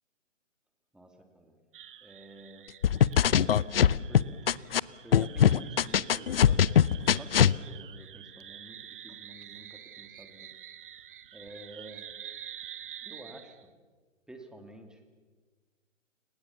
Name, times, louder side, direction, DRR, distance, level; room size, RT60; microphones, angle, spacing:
voice 1, 0.9-1.5 2.0-2.7 3.6-4.6 5.0-6.6 7.1-10.5 11.3-12.1 13.0-13.7 14.3-15.0, right 1 dB, ahead, 5 dB, 2.4 m, -50 dB
sound 1, 1.7-13.6, right 10 dB, 45° right, 1.6 m, -48 dB
sound 2, 2.8-4.8 5.1-7.5, left 9 dB, 50° left, 0.7 m, -21 dB
29.5 x 23.5 x 7.1 m, 1.4 s
figure-of-eight pair, 140°, 38 cm